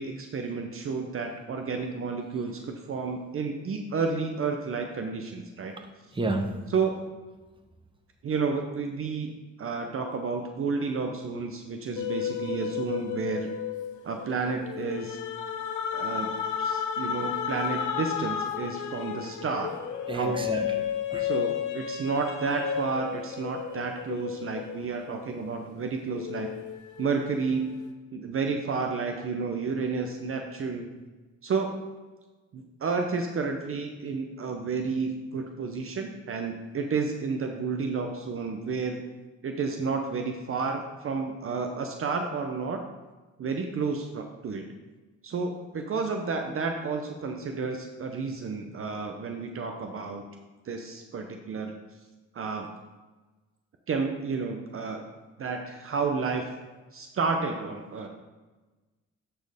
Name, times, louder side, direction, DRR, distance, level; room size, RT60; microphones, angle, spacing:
voice 1, 0.0-5.7 6.7-6.9 8.2-13.5 14.0-15.2 15.9-16.3 16.6-19.7 20.1-20.4 21.2-26.5 27.0-27.7 28.1-30.9 31.4-31.8 32.5-39.0 39.4-42.8 43.4-44.6 45.2-50.3 50.6-51.8 52.3-52.7 53.9-55.0 55.4-56.4 56.9-58.1, right 4 dB, 45° right, 4 dB, 0.8 m, -31 dB
voice 2, 6.1-6.5 20.1-20.6 21.1-21.2, right 2 dB, 15° right, 4 dB, 1.0 m, -29 dB
sound 1, 12.0-25.7 26.1-27.8, left 8 dB, 75° left, 0.8 m, -33 dB
11.5 x 4.5 x 3.5 m, 1.2 s
cardioid pair, 90°, 30 cm